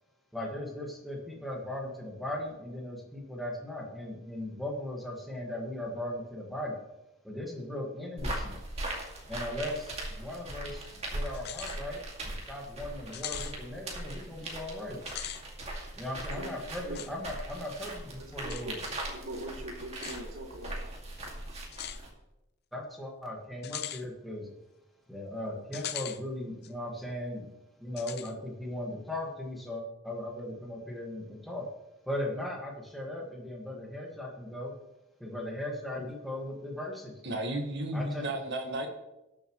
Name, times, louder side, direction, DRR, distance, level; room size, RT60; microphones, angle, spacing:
voice 1, 0.3-6.8 7.2-8.6 9.3-15.0 16.0-18.8 22.7-24.5 25.1-27.5 27.8-31.7 32.0-34.7 35.2-37.2 37.9-38.4, left 1 dB, ahead, -2 dB, 1.8 m, -38 dB
sound 1, 8.2-22.1, right 1 dB, 30° right, 2.2 m, -40 dB
sound 2, 11.3-11.8 12.2-12.3 13.1-13.6 15.0-15.4 16.9-17.1 18.5-18.7 19.9-20.2 21.7-22.0 23.6-24.0 25.7-26.2 26.6-26.7 28.0-28.3, left 11 dB, 50° left, 0.6 m, -39 dB
voice 2, 18.2-20.9, right 1 dB, 70° right, 0 dB, 2.1 m, -42 dB
voice 3, 37.2-38.9, right 1 dB, 55° right, 3 dB, 1.6 m, -33 dB
19.5 x 7.2 x 3.1 m, 0.96 s
head